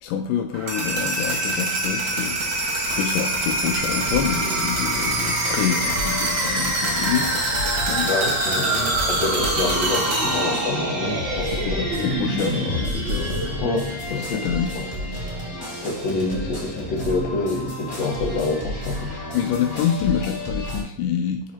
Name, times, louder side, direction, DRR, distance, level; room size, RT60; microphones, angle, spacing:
voice 1, 0.0-2.6 3.0-7.5 7.7-8.1 11.3-13.5 14.1-14.7 19.3-21.4, left 8 dB, 85° left, 4 dB, 2.2 m, -27 dB
sound 1, 0.5-14.4, right 1 dB, 40° right, 1.7 m, -25 dB
sound 2, 3.7-20.8, left 1 dB, 10° left, 1.1 m, -32 dB
voice 2, 8.0-12.2 13.6-14.9 15.8-19.1, left 3 dB, 60° left, -1 dB, 2.2 m, -27 dB
10.0 x 4.1 x 2.9 m, 0.67 s
omnidirectional pair, 3.7 m